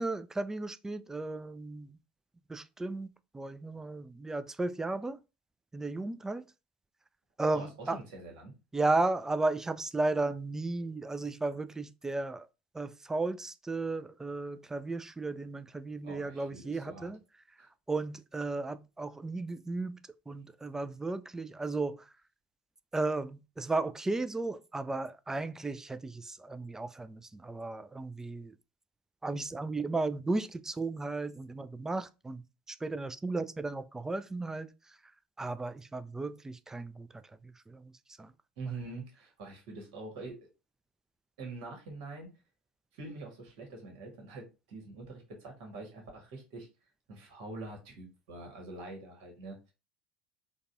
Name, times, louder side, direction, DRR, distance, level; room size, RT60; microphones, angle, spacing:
voice 1, 0.0-1.9 2.5-5.2 5.7-6.5 7.4-8.0 8.7-12.5 12.7-17.2 17.9-20.0 20.3-22.0 22.9-28.5 29.2-32.4 32.7-34.7 35.4-37.1 37.4-37.9 38.2-38.3, right 3 dB, 10° right, 0.3 m, -34 dB
voice 2, 7.5-8.5 16.0-17.1 17.6-17.7 38.6-40.5 41.4-42.3 42.9-46.7 47.1-49.7, right 3 dB, 60° right, 1.3 m, -45 dB
3.9 x 2.3 x 2.5 m
figure-of-eight pair, 65°, 4 cm